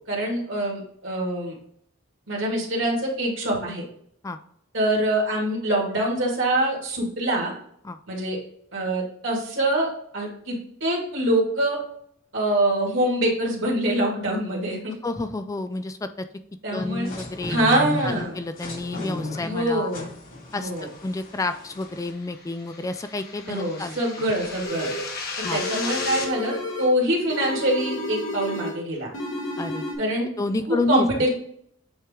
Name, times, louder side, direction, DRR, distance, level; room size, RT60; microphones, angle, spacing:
voice 1, 0.0-1.5 2.3-3.8 4.7-7.5 8.1-8.4 8.7-9.9 10.1-11.8 12.3-14.9 16.6-17.1 17.5-18.3 19.4-20.1 20.5-20.9 23.5-24.9 25.5-29.1 30.0-30.3 30.7-31.3, right 1 dB, 70° right, -2 dB, 2.3 m, -24 dB
voice 2, 15.0-16.3 16.7-17.6 18.0-19.9 20.5-24.2 25.4-25.6 29.6-29.9 30.4-31.1, left 2 dB, 15° left, 10 dB, 0.3 m, -30 dB
sound 1, 16.8-22.1, left 2 dB, 90° left, 2.6 m, -35 dB
sound 2, 21.8-26.3, left 4 dB, 50° left, 1.4 m, -35 dB
sound 3, 24.6-25.1 25.4-27.0 27.3-28.8 29.1-29.9, left 1 dB, 70° left, 1.4 m, -31 dB
8.6 x 3.1 x 3.6 m, 0.67 s
head